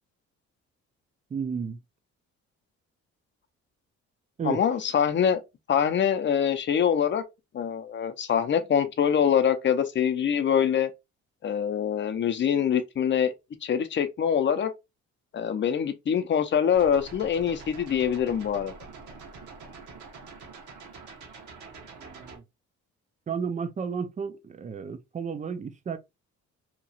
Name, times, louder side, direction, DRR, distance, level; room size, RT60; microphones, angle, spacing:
voice 1, 1.3-1.8 4.4-4.6 22.0-22.4 23.3-26.0, right 6 dB, 25° right, 0.4 m, -33 dB
voice 2, 4.4-5.4 5.7-7.2 7.5-10.9 11.4-13.3 13.6-14.7 15.3-18.7, left 8 dB, 40° left, 0.5 m, -24 dB
sound 1, 16.7-22.4, right 4 dB, 75° right, 1.1 m, -45 dB
2.9 x 2.3 x 2.6 m
cardioid pair, 90°, 30 cm